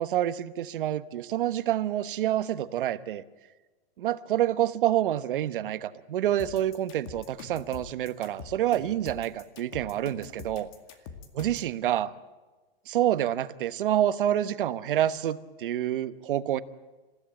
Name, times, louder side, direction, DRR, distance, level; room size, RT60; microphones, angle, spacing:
voice 1, 0.0-3.2 4.0-10.7 11.4-12.1 12.9-16.6, right 12 dB, 60° right, 13 dB, 1.1 m, -27 dB
sound 1, 6.4-11.7, left 6 dB, 35° left, 2.1 m, -44 dB
27.5 x 15.5 x 9.0 m, 1.3 s
hypercardioid pair, 165°, 30 cm